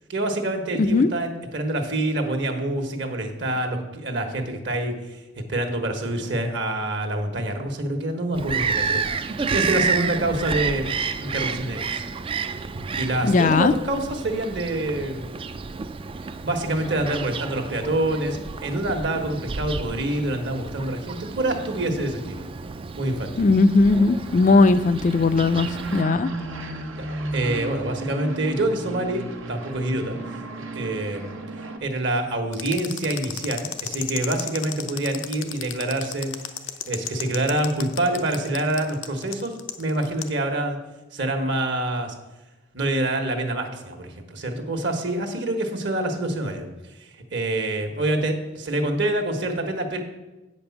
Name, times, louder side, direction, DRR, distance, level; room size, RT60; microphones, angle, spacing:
voice 1, 0.1-5.2 5.5-9.1 9.5-10.9 11.2-12.0 13.0-15.2 16.4-22.5 22.9-23.3 26.9-30.2 30.7-31.4 31.8-36.3 36.9-40.8 41.1-42.1 42.7-46.7 47.0-50.0, right 1 dB, 60° right, 5 dB, 1.3 m, -26 dB
voice 2, 0.8-1.1 13.2-13.7 23.4-26.3, left 3 dB, 40° left, 14 dB, 0.4 m, -18 dB
Bird vocalization bird call bird song, 8.3-26.0, right 5 dB, 25° right, 0.3 m, -30 dB
sound 1, 23.6-31.8, right 2 dB, 85° right, 1.1 m, -34 dB
sound 2, 32.5-40.3, left 10 dB, 80° left, 0.7 m, -33 dB
8.6 x 5.2 x 7.1 m, 1.1 s
head